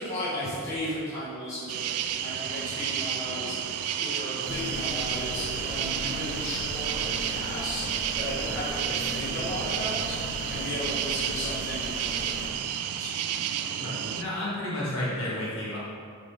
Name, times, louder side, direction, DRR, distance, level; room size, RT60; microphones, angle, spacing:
voice 1, 0.0-10.2 10.5-13.1, equal, 15° left, -13 dB, 1.3 m, -35 dB
sound 1, 1.7-14.2, right 9 dB, 85° right, 0.3 m, -31 dB
sound 2, 4.4-12.5, left 2 dB, 40° left, 0.7 m, -38 dB
voice 2, 13.7-15.8, left 1 dB, 65° left, -8 dB, 1.5 m, -31 dB
7.4 x 4.0 x 3.4 m, 2.2 s
head